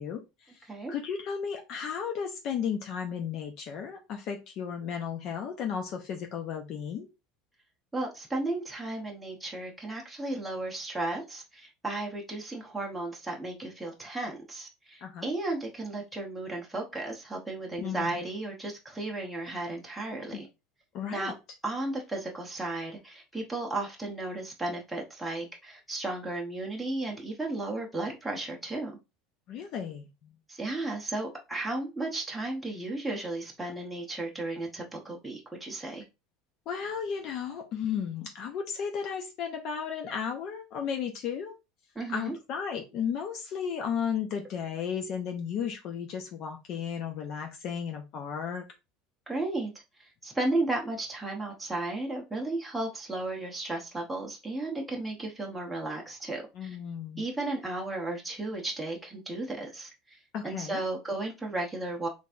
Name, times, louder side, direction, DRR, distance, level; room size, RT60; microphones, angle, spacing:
voice 1, 0.0-7.1 15.0-15.3 17.8-18.2 20.3-20.4 20.9-21.3 29.5-30.4 36.7-41.6 42.1-48.7 56.5-57.2 60.3-60.8, left 7 dB, 45° left, 0.6 m, -34 dB
voice 2, 7.9-20.5 21.1-21.3 21.6-28.9 30.5-36.0 41.9-42.3 49.3-49.7 50.0-56.8 57.2-60.2 60.4-62.1, right 2 dB, 5° right, 0.9 m, -34 dB
4.0 x 3.4 x 2.5 m
supercardioid pair, 150°, 0 cm